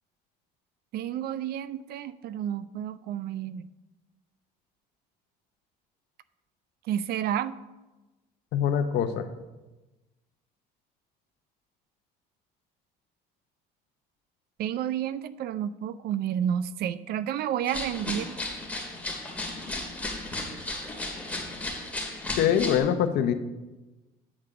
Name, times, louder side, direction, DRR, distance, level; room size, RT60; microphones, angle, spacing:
voice 1, 0.9-3.7 6.9-7.6 14.6-18.3, right 10 dB, 65° right, 15 dB, 0.4 m, -30 dB
voice 2, 8.5-9.3 22.4-23.3, left 9 dB, 80° left, 9 dB, 0.7 m, -24 dB
sound 1, 17.7-22.8, left 2 dB, 10° left, 2.3 m, -34 dB
8.7 x 4.8 x 6.7 m, 1.1 s
cardioid pair, 110°, 17 cm